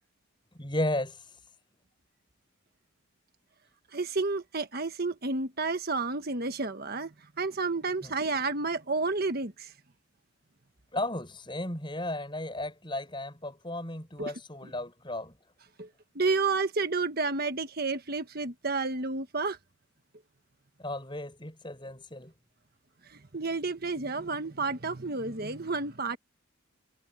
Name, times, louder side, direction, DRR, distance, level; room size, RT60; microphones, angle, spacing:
voice 1, 0.5-1.2 8.0-8.1 10.9-15.3 20.8-22.3, left 1 dB, 20° left, 7.5 m, -34 dB
voice 2, 3.9-9.7 14.2-14.3 14.6-14.7 15.8-15.9 16.1-19.6 23.1-26.2, right 3 dB, 45° right, 1.4 m, -31 dB
head